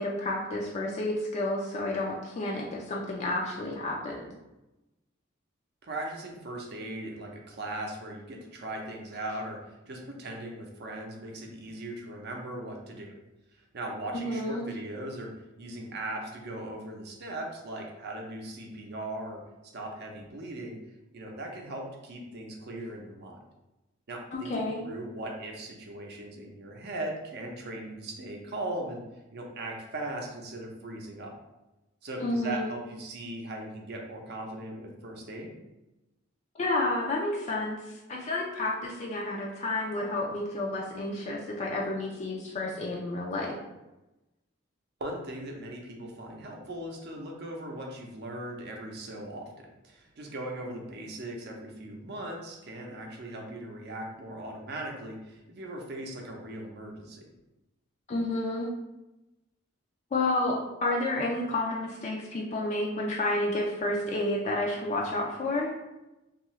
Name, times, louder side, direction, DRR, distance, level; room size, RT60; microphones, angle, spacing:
voice 1, 0.0-4.3 14.2-14.6 24.3-24.8 32.2-32.7 36.5-43.6 58.1-58.7 60.1-65.7, left 2 dB, 35° left, -1 dB, 0.3 m, -30 dB
voice 2, 5.8-9.6 9.9-13.1 13.7-15.3 15.6-19.4 19.7-20.8 21.1-23.4 24.1-29.0 29.3-31.3 32.0-35.5 45.0-57.3, right 1 dB, 55° right, 1 dB, 0.5 m, -39 dB
2.7 x 2.4 x 3.0 m, 1.0 s
head